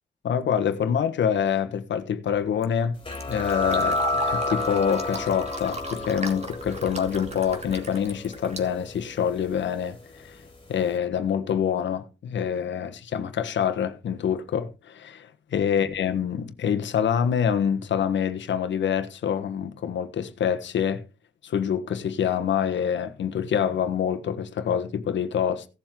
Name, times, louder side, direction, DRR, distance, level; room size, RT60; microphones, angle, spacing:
voice 1, 0.2-3.0 3.3-10.4 10.7-21.0 21.4-25.7, left 8 dB, 80° left, 1.4 m, -26 dB
Fill (with liquid), 2.3-9.4, right 2 dB, 35° right, 2.6 m, -39 dB
sound 1, 3.0-10.3, left 2 dB, 25° left, 3.2 m, -31 dB
16.5 x 7.5 x 3.8 m
cardioid pair, 75°, 19 cm